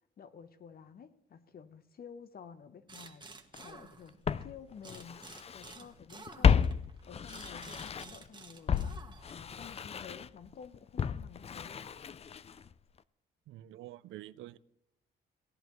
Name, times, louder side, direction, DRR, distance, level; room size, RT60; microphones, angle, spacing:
voice 1, 0.2-3.2 3.6-5.2 5.5-6.7 7.1-9.0 9.3-11.9, left 7 dB, 50° left, 0.9 m, -51 dB
sound 1, 2.9-4.4 4.8-9.5, right 4 dB, 25° right, 1.4 m, -51 dB
Walk footsteps, 3.5-3.6 4.3-5.7 6.0-8.3 8.7-12.7 13.0-13.1, left 7 dB, 30° left, 0.4 m, -32 dB
voice 2, 13.5-14.6, right 14 dB, 85° right, 0.5 m, -47 dB
17.0 x 10.5 x 3.1 m
cardioid pair, 90°, 20 cm